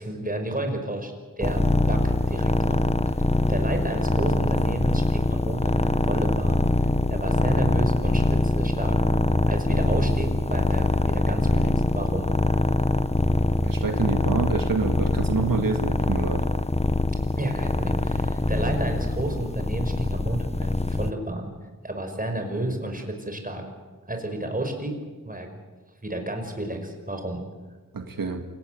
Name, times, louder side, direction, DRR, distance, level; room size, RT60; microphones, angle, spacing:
voice 1, 0.0-2.8 3.5-6.6 6.8-8.9 9.5-12.3 17.4-21.5 21.8-23.6 24.1-25.0 25.3-25.5 26.0-27.4, right 1 dB, 25° right, 4 dB, 5.6 m, -31 dB
sound 1, 1.4-21.1, left 2 dB, 20° left, 1.1 m, -23 dB
voice 2, 13.6-16.5 27.9-28.4, right 4 dB, 90° right, 5 dB, 2.0 m, -27 dB
27.5 x 17.5 x 9.5 m, 1.3 s
wide cardioid pair, 85°, 33 cm